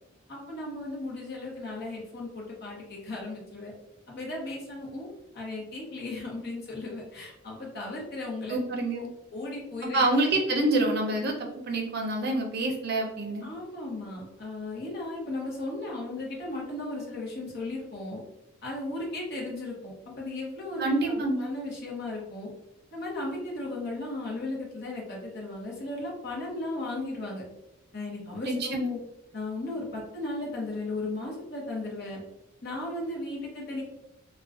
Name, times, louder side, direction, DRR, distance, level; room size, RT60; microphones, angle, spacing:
voice 1, 0.3-3.7 4.1-8.6 8.9-9.0 9.3-10.1 13.4-18.2 18.6-20.9 21.2-22.5 22.9-27.4 27.9-29.0 29.3-32.2 32.6-33.8, left 2 dB, 50° left, -3 dB, 0.8 m, -36 dB
voice 2, 8.5-9.1 9.8-13.5 20.8-21.5 28.4-28.9, right 2 dB, 50° right, 1 dB, 0.5 m, -27 dB
2.4 x 2.2 x 2.4 m, 0.89 s
head